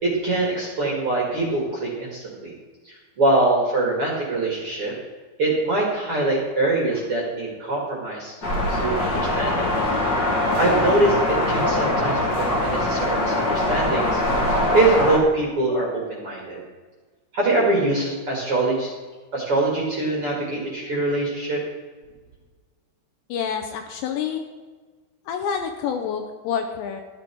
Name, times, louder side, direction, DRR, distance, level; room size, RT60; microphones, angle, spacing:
voice 1, 0.0-2.5 2.8-4.9 5.4-9.7 10.6-14.2 14.5-16.6 17.3-18.9 19.3-21.6, right 2 dB, 45° right, -3 dB, 2.0 m, -23 dB
sound 1, 8.4-15.2, left 1 dB, 40° left, 1.5 m, -22 dB
voice 2, 23.3-24.4 25.3-27.0, left 7 dB, 75° left, 5 dB, 2.7 m, -27 dB
14.0 x 11.0 x 4.6 m, 1.4 s
omnidirectional pair, 5.7 m